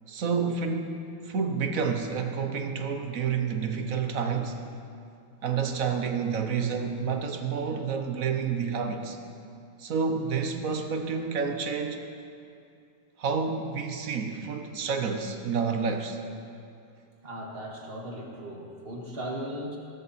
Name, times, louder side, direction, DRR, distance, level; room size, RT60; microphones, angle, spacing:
voice 1, 0.1-1.0 1.2-4.6 5.4-9.2 9.8-12.1 13.2-16.2, right 5 dB, 65° right, 6 dB, 1.3 m, -29 dB
voice 2, 17.2-19.8, equal, 40° right, -1 dB, 2.0 m, -37 dB
18.0 x 13.0 x 4.2 m, 2.5 s
omnidirectional pair, 1.6 m